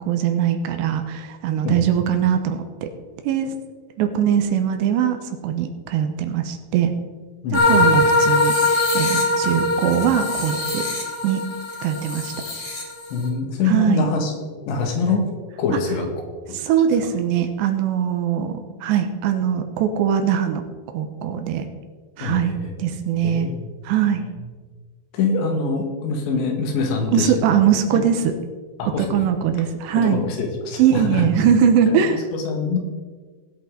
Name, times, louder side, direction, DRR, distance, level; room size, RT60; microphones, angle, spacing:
voice 1, 0.0-2.9 3.2-3.5 4.0-6.9 7.5-10.8 11.2-11.4 11.8-12.3 13.7-14.1 16.5-20.6 20.9-21.7 22.2-23.5 23.8-24.3 27.1-28.3 29.0-30.2 30.8-32.2, right 8 dB, 80° right, 6 dB, 3.0 m, -21 dB
voice 2, 7.4-8.0 13.1-14.3 14.7-15.3 15.6-16.1 16.5-16.6 22.2-22.7 23.2-23.7 24.2-24.3 25.1-27.3 28.8-29.2 30.0-31.3 31.9-32.8, left 4 dB, 80° left, 3 dB, 3.9 m, -24 dB
sound 1, 7.5-13.3, left 2 dB, 35° left, 1.8 m, -21 dB
18.5 x 8.5 x 3.8 m, 1.5 s
omnidirectional pair, 5.1 m